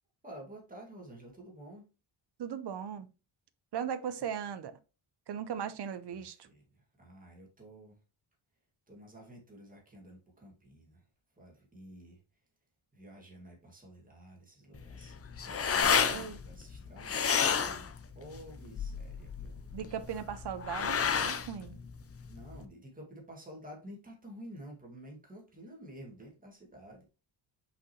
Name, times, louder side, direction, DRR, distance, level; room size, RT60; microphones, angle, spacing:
voice 1, 0.2-1.9 6.1-8.0 8.9-11.0 11.3-12.2 12.9-15.2 15.4-19.6 22.3-27.1, equal, 15° right, 2.2 m, -51 dB
voice 2, 2.4-3.1 3.7-4.8 5.3-6.4 16.1-16.4 19.7-21.8, right 8 dB, 60° right, 0.7 m, -38 dB
sound 1, 14.7-22.6, left 6 dB, 30° left, 0.5 m, -31 dB
6.1 x 5.3 x 3.1 m
wide cardioid pair, 165°, 48 cm